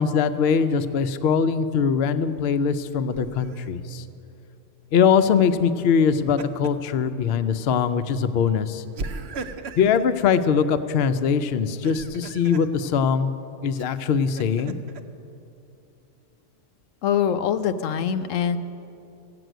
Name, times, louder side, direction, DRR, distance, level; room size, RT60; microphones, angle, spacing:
voice 1, 0.0-4.0 4.9-8.8 9.8-13.3 13.6-14.8, left 6 dB, 60° left, 11 dB, 0.8 m, -22 dB
Laughter, 3.1-3.7 6.0-6.9 7.3-7.5 8.9-10.1 11.7-12.7 13.8-15.0, right 3 dB, 60° right, 0.8 m, -37 dB
voice 2, 17.0-18.6, left 8 dB, 85° left, 10 dB, 1.0 m, -23 dB
15.5 x 7.8 x 9.1 m, 2.8 s
omnidirectional pair, 1.3 m